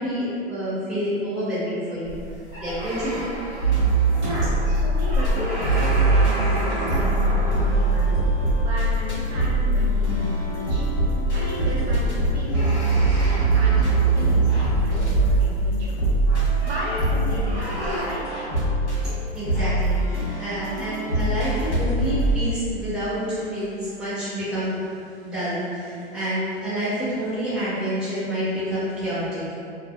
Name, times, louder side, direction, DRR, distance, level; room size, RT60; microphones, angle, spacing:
voice 1, 0.0-2.2 2.6-3.4 19.0-24.8 25.2-29.4, equal, ahead, -23 dB, 0.6 m, -28 dB
sound 1, 2.0-18.0, equal, 25° right, 1.0 m, -32 dB
sound 2, 3.6-5.3 5.6-22.3, right 2 dB, 75° left, 1.2 m, -22 dB
voice 2, 4.2-8.3 8.5-10.9 11.3-16.0 16.6-18.3, equal, 70° right, -5 dB, 0.8 m, -34 dB
2.6 x 2.4 x 2.3 m, 2.4 s
hypercardioid pair, 180°, 34 cm